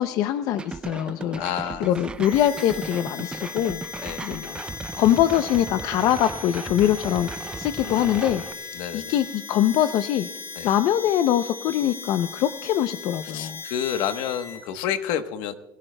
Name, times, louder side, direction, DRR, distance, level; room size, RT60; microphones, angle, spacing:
voice 1, 0.0-1.4 1.8-3.8 4.2-4.6 5.0-8.4 8.9-10.3 10.6-13.6, left 11 dB, 55° left, 10 dB, 0.5 m, -23 dB
sound 1, 0.6-8.5, right 4 dB, 15° right, 0.4 m, -36 dB
voice 2, 1.3-2.0 4.0-4.3 7.8-8.2 8.7-9.2 10.5-10.7 13.2-15.5, left 9 dB, 80° left, 9 dB, 1.1 m, -30 dB
Harmonica, 2.2-14.6, left 5 dB, 35° left, 4.3 m, -38 dB
22.0 x 16.5 x 2.2 m, 1.0 s
cardioid pair, 175°, 7 cm